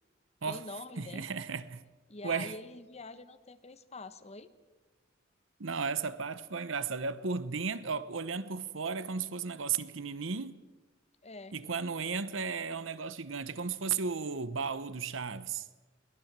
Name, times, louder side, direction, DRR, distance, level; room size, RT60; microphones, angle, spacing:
voice 1, 0.4-1.2 2.1-4.5 11.2-11.6, left 3 dB, 35° left, 1.2 m, -45 dB
voice 2, 1.0-1.8 2.2-2.5 5.6-10.6 11.5-15.7, right 5 dB, 70° right, 1.0 m, -35 dB
22.0 x 19.5 x 7.5 m
head